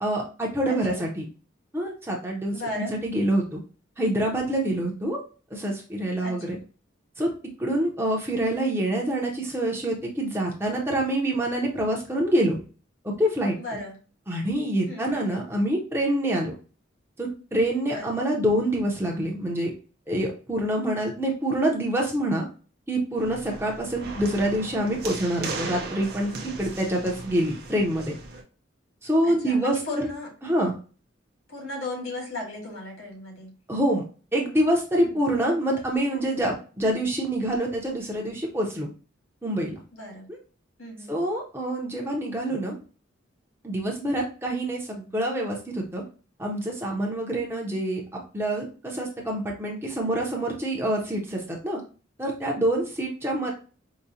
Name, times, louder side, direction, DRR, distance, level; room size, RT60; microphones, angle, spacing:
voice 1, 0.0-1.3 1.7-3.6 4.0-5.2 5.5-6.6 7.2-7.3 7.6-12.6 13.2-13.6 14.3-16.5 17.2-19.7 20.1-22.4 22.9-28.1 29.0-29.8 30.4-30.7 33.7-34.0 34.3-38.9 39.4-39.7 40.3-40.4 41.1-42.8 43.6-46.0 46.4-51.8 52.2-53.5, right 1 dB, 10° right, -1 dB, 0.6 m, -26 dB
voice 2, 0.7-1.1 2.5-2.9 6.2-6.6 13.6-14.0 14.9-15.1 17.9-18.1 29.2-30.3 31.5-33.5 35.0-35.3 39.9-40.3 40.8-41.1, left 2 dB, 85° left, -2 dB, 1.9 m, -36 dB
sound 1, 23.2-28.4, right 3 dB, 50° right, 0.6 m, -37 dB
4.8 x 2.1 x 2.7 m, 0.36 s
head